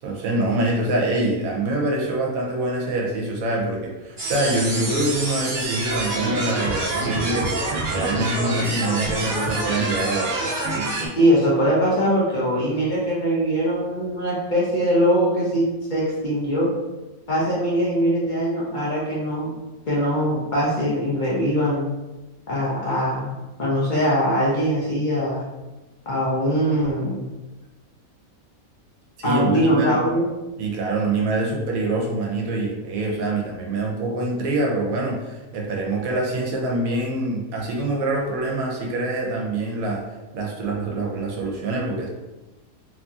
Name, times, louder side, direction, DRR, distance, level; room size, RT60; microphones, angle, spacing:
voice 1, 0.0-7.6 7.9-10.5 29.2-30.0 30.6-40.0 40.3-42.1, right 2 dB, 75° right, -1 dB, 1.0 m, -25 dB
sound 1, 4.2-11.1, right 2 dB, 50° right, 0.6 m, -26 dB
voice 2, 11.2-15.6 15.9-16.7 17.3-19.5 19.9-21.8 22.5-23.3 23.6-25.4 26.1-27.2 29.2-30.2, equal, 50° left, -7 dB, 0.6 m, -21 dB
2.9 x 2.6 x 2.3 m, 1.1 s
omnidirectional pair, 1.5 m